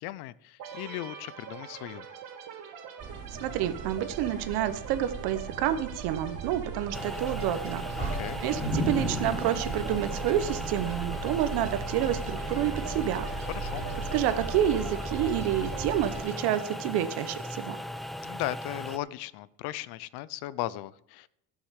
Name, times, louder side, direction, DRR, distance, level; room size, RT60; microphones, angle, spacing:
voice 1, 0.0-2.1 8.0-8.4 13.5-13.9 18.2-21.3, left 15 dB, 80° left, 19 dB, 0.7 m, -37 dB
sound 1, 0.6-18.2, right 7 dB, 60° right, 2.1 m, -44 dB
sound 2, 3.0-16.2, right 2 dB, 20° right, 5.6 m, -36 dB
voice 2, 3.4-8.0 8.4-13.3 14.1-17.8, right 11 dB, 85° right, 11 dB, 1.2 m, -29 dB
sound 3, 6.9-19.0, left 1 dB, ahead, 0.5 m, -38 dB
15.0 x 6.3 x 6.4 m, 0.79 s
cardioid pair, 130°, 38 cm